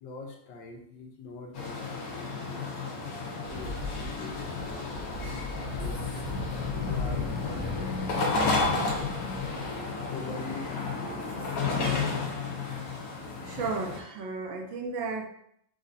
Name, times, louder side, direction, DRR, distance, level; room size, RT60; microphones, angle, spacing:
voice 1, 0.0-2.7 3.5-6.1 6.8-8.4 10.0-11.8, left 4 dB, 70° left, 1 dB, 1.4 m, -44 dB
sound 1, 1.5-14.0, left 4 dB, 55° left, 1.1 m, -32 dB
sound 2, 3.5-9.7, equal, 90° right, 1.5 m, -40 dB
voice 2, 13.4-15.3, right 4 dB, 70° right, 2 dB, 1.3 m, -33 dB
5.2 x 2.3 x 3.9 m, 0.71 s
omnidirectional pair, 2.3 m